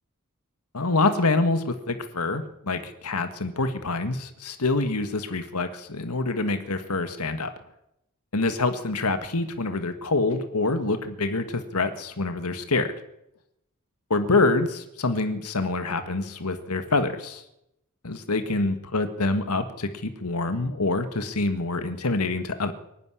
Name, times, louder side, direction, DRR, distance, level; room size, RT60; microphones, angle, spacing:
voice 1, 0.7-7.5 8.3-12.9 14.1-17.4 18.0-22.7, left 3 dB, 80° left, 9 dB, 1.7 m, -26 dB
23.5 x 12.0 x 10.0 m, 0.83 s
head